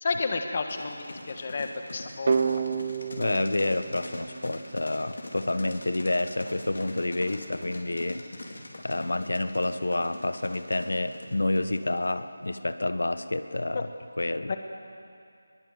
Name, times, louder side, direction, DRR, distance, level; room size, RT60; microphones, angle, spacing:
voice 1, 0.0-2.7 13.7-13.8 14.5-14.6, left 4 dB, 30° left, 6 dB, 1.5 m, -31 dB
sound 1, 0.7-12.2, left 2 dB, 60° left, 4.6 m, -43 dB
sound 2, 2.3-5.1, right 5 dB, 30° right, 0.8 m, -30 dB
voice 2, 3.1-8.2 8.8-13.9 14.2-14.5, left 2 dB, 85° left, 10 dB, 1.2 m, -29 dB
22.5 x 22.0 x 7.9 m, 2.5 s
figure-of-eight pair, 175°, 0 cm